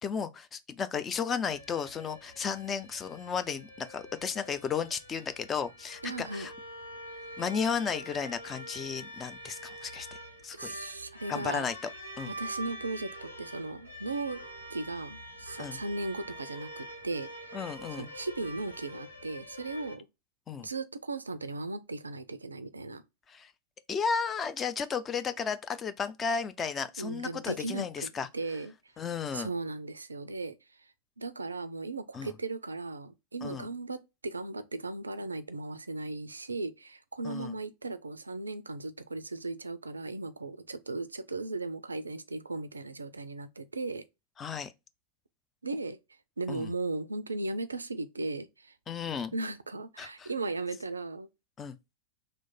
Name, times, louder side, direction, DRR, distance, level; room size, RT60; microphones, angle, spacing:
voice 1, 0.0-6.5 7.4-10.1 10.4-10.7 11.3-11.7 12.2-12.3 15.6-15.8 17.5-18.1 20.5-20.7 23.3-23.5 23.9-28.3 29.0-29.5 32.1-32.3 33.4-33.7 37.2-37.5 44.4-44.7 46.5-46.7 48.9-49.3 50.0-50.3 51.6-51.8, left 6 dB, 20° left, 0.4 m, -34 dB
sound 1, 1.4-20.0, equal, 85° left, 1.0 m, -45 dB
voice 2, 6.0-6.5 10.5-11.7 12.3-14.4 14.7-17.6 18.0-20.1 20.6-23.0 27.0-28.7 29.3-30.6 31.2-44.0 45.6-46.0 46.4-48.7 49.3-51.3, right 2 dB, 80° right, 0.3 m, -37 dB
3.1 x 2.1 x 3.9 m
figure-of-eight pair, 90°, 0 cm